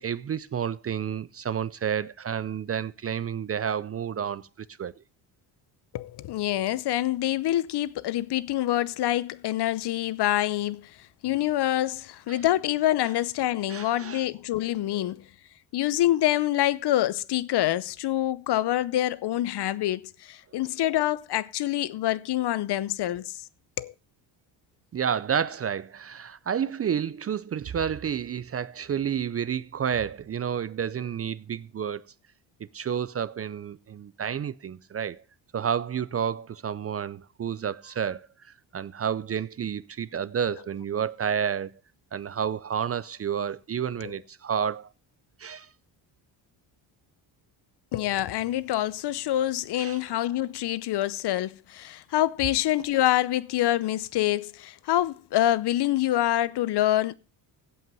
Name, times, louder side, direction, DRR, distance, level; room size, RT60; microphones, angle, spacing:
voice 1, 0.0-4.9 12.3-12.4 13.7-14.3 24.9-32.0 32.7-35.2 35.5-38.3 38.7-41.7 42.1-44.9 45.4-45.7 49.8-50.0, right 8 dB, 30° right, 0.5 m, -30 dB
voice 2, 5.9-15.3 15.7-23.4 23.8-23.9 44.0-44.1 47.9-57.1, left 14 dB, 55° left, 0.7 m, -26 dB
16.0 x 5.7 x 5.4 m
supercardioid pair, 80°, 47 cm